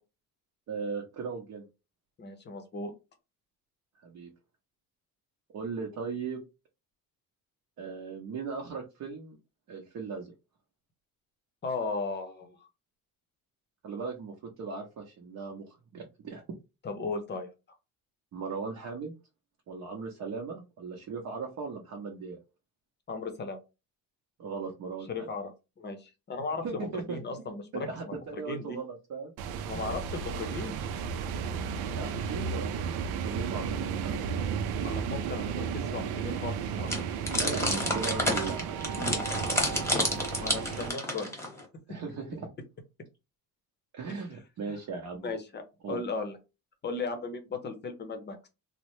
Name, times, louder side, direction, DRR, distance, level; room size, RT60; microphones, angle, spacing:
voice 1, 0.7-1.7 4.0-4.3 5.5-6.4 7.8-9.4 9.7-10.3 13.8-16.4 18.3-19.1 19.7-22.4 24.4-25.3 26.6-27.2 27.7-29.3 29.9-30.0 31.9-34.2 37.3-39.8 41.9-42.5 43.9-45.3 45.8-46.0, right 5 dB, 50° right, 0 dB, 0.7 m, -38 dB
voice 2, 2.2-2.9 11.6-12.7 16.8-17.5 23.1-23.6 25.1-25.5 25.8-28.2 28.5-28.8 29.7-30.8 34.8-36.9 40.3-41.3 44.1-44.2 45.2-45.6 45.9-46.4 46.8-48.5, left 3 dB, 30° left, 7 dB, 0.7 m, -36 dB
sound 1, 29.4-40.9, right 6 dB, 85° right, 0.5 m, -34 dB
sound 2, 36.9-41.6, left 1 dB, 5° left, 0.9 m, -30 dB
3.2 x 2.1 x 3.0 m, 0.27 s
cardioid pair, 140°, 36 cm